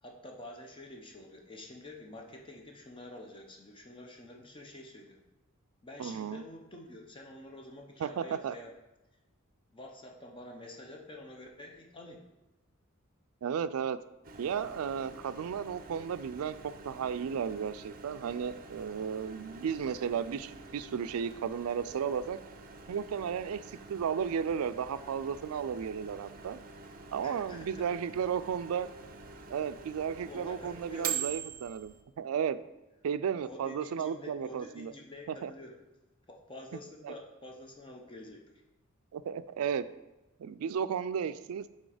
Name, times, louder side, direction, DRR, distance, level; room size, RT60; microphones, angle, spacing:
voice 1, 0.0-5.2 5.8-8.7 9.7-12.2 27.2-27.9 30.3-31.2 33.4-35.8 36.3-38.5, left 1 dB, 25° left, 1 dB, 0.8 m, -48 dB
voice 2, 6.0-6.4 8.0-8.5 13.4-14.0 14.4-22.4 22.9-26.6 27.1-28.9 29.5-32.6 33.0-34.9 35.4-35.5 37.0-37.1 39.1-39.8 40.4-41.7, right 7 dB, 90° right, 14 dB, 0.3 m, -34 dB
Microwave oven, 14.2-32.0, right 6 dB, 40° right, 0.6 m, -45 dB
6.2 x 4.2 x 4.9 m, 1.0 s
head